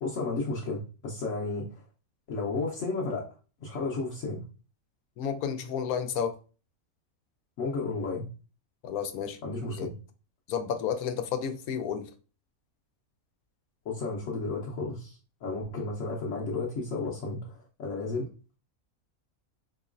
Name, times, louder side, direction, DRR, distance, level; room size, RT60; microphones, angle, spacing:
voice 1, 0.0-1.7 2.3-3.3 3.6-4.4 7.6-8.3 9.4-9.9 13.9-17.5 17.8-18.3, left 3 dB, 65° left, 1.1 m, -32 dB
voice 2, 5.2-6.3 8.8-9.4 9.7-9.9 10.5-12.1, left 7 dB, 90° left, 1.1 m, -31 dB
4.0 x 3.0 x 2.4 m
omnidirectional pair, 1.5 m